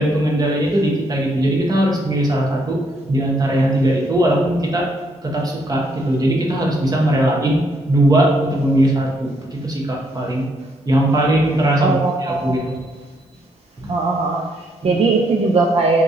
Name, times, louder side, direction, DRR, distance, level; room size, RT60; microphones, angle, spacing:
voice 1, 0.0-2.8 3.1-4.9 5.2-10.5 10.9-12.8 13.8-13.9 14.8-15.0, right 1 dB, 30° right, -2 dB, 0.9 m, -19 dB
voice 2, 11.8-12.5 13.9-16.0, right 3 dB, 55° right, 0 dB, 0.4 m, -19 dB
3.7 x 2.9 x 2.7 m, 1.4 s
cardioid pair, 85°, 12 cm